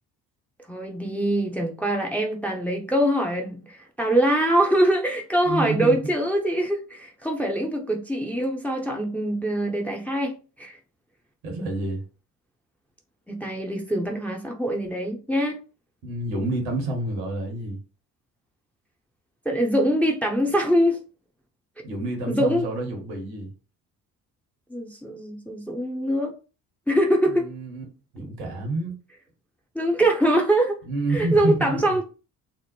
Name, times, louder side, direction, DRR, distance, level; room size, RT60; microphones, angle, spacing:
voice 1, 0.7-10.8 13.3-15.6 19.5-21.0 22.3-22.7 24.7-26.3 26.9-27.5 29.7-30.8 31.1-32.0, right 1 dB, 5° left, 0.7 m, -23 dB
voice 2, 5.4-6.1 11.4-12.0 16.0-17.8 21.8-23.5 27.3-27.8 28.1-28.9 30.8-32.0, right 2 dB, 75° right, 1.3 m, -28 dB
3.4 x 2.0 x 3.0 m
hypercardioid pair, 50°, 46 cm